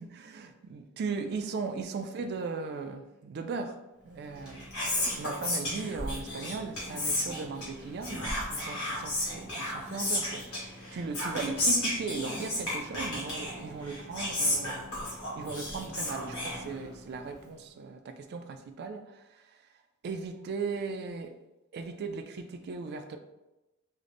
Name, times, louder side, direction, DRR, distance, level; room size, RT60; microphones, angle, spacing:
voice 1, 0.0-3.8 4.0-14.9 15.4-19.6 20.0-21.4 21.7-23.2, right 4 dB, 45° right, 0.3 m, -38 dB
Whispering, 4.3-17.1, left 1 dB, 75° left, 1.4 m, -33 dB
3.7 x 2.1 x 3.3 m
head